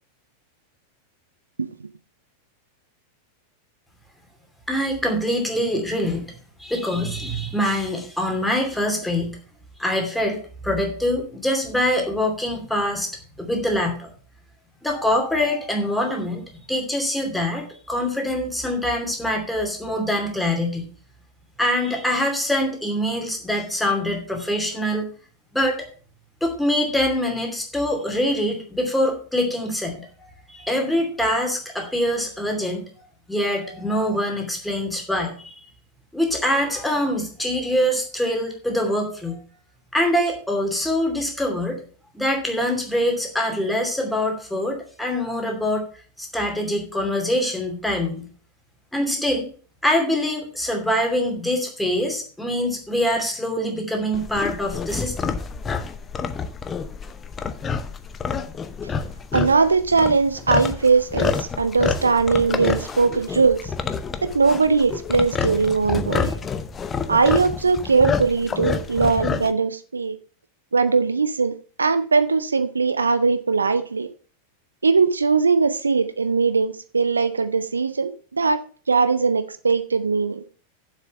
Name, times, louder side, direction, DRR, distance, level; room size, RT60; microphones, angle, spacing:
voice 1, 4.7-6.2 6.6-9.4 9.8-10.4 10.6-13.1 13.4-14.1 14.8-16.4 16.7-20.8 21.6-25.1 25.5-25.9 26.4-30.0 30.5-32.8 33.3-35.6 36.1-39.4 39.9-41.8 42.1-45.8 46.2-48.2 48.9-49.5 49.8-55.3, left 1 dB, 5° left, 2.7 m, -24 dB
sound 1, 54.1-69.5, left 5 dB, 20° left, 0.8 m, -28 dB
voice 2, 59.3-63.7 64.2-66.3 67.1-70.2 70.7-71.5 71.8-74.1 74.8-80.4, right 4 dB, 75° right, 0.6 m, -20 dB
7.4 x 6.5 x 6.6 m
figure-of-eight pair, 90°, 0 cm